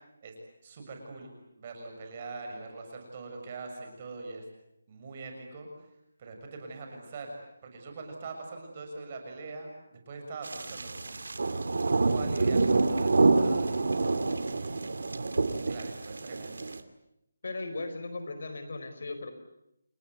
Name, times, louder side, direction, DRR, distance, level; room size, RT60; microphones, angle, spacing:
voice 1, 0.6-1.3 1.6-4.4 4.9-5.7 6.2-7.3 7.6-11.1 11.9-13.8 14.4-15.2 15.5-16.7, right 3 dB, 30° right, 3 dB, 6.7 m, -43 dB
sound 1, 10.4-16.8, right 3 dB, 75° right, 2.5 m, -27 dB
voice 2, 17.4-19.3, left 2 dB, 60° left, 9 dB, 4.6 m, -37 dB
29.5 x 18.5 x 9.8 m, 0.84 s
hypercardioid pair, 175°, 0 cm